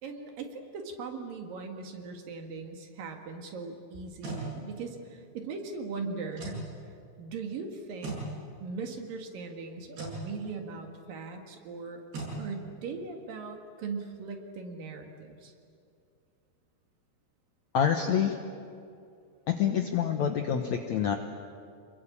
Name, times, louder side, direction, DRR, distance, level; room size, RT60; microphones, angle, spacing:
voice 1, 0.0-6.6 7.2-8.2 8.6-12.0 12.4-15.5, right 4 dB, 60° right, 4 dB, 3.4 m, -39 dB
sound 1, 3.9-4.5 6.3-6.6 8.0-8.3 9.9-10.2 12.1-12.4, right 2 dB, 85° right, 9.1 m, -37 dB
voice 2, 17.7-18.4 19.5-21.2, left 8 dB, 70° left, 5 dB, 1.7 m, -27 dB
27.5 x 21.5 x 8.7 m, 2.4 s
omnidirectional pair, 4.7 m